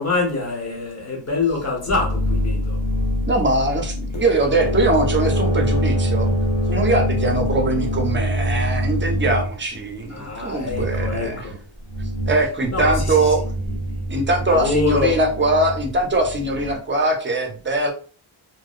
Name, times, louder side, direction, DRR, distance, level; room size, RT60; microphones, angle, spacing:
voice 1, 0.0-2.8 10.1-11.6 12.7-13.5 13.9-14.0 14.5-15.2, left 3 dB, 35° left, 0.8 m, -25 dB
sound 1, 1.9-9.5 10.6-11.2 11.8-12.5 12.7-16.7, equal, 60° left, 0.7 m, -24 dB
voice 2, 3.3-6.3 6.7-11.4 12.3-13.4 14.1-17.9, right 2 dB, 25° right, 0.4 m, -21 dB
2.5 x 2.0 x 2.3 m
wide cardioid pair, 145°, 46 cm